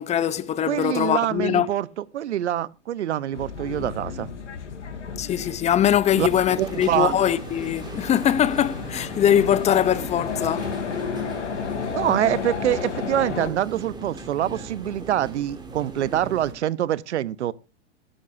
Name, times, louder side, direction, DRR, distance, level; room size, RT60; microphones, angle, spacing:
voice 1, 0.0-1.7 5.2-10.7, left 10 dB, 20° left, 0.8 m, -22 dB
voice 2, 0.7-1.9 2.1-4.3 6.2-6.3 6.6-7.1 11.9-17.5, right 12 dB, 75° right, 0.9 m, -25 dB
sound 1, 3.3-13.5, left 6 dB, 85° left, 3.2 m, -33 dB
sound 2, 6.1-16.5, right 3 dB, 10° right, 3.6 m, -39 dB
16.5 x 13.0 x 2.6 m
hypercardioid pair, 115°, 35 cm